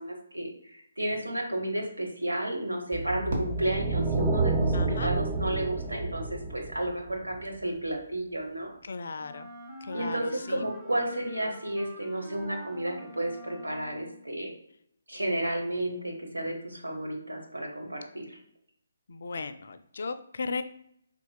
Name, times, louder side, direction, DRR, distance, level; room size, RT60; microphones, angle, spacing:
voice 1, 0.0-8.7 9.9-14.5 15.1-18.4, right 1 dB, 85° right, 1 dB, 1.0 m, -32 dB
sound 1, 2.9-7.3, right 3 dB, 15° right, 0.3 m, -29 dB
Fireworks, 3.3-5.5, right 1 dB, 60° right, 1.0 m, -39 dB
voice 2, 4.7-5.1 8.8-9.5 9.8-10.6 15.7-16.8 19.1-20.6, left 4 dB, 60° left, 10 dB, 0.4 m, -37 dB
Wind instrument woodwind instrument, 9.2-14.2, right 1 dB, 5° left, 0.8 m, -46 dB
4.5 x 2.8 x 2.2 m, 0.71 s
figure-of-eight pair, 140°, 0 cm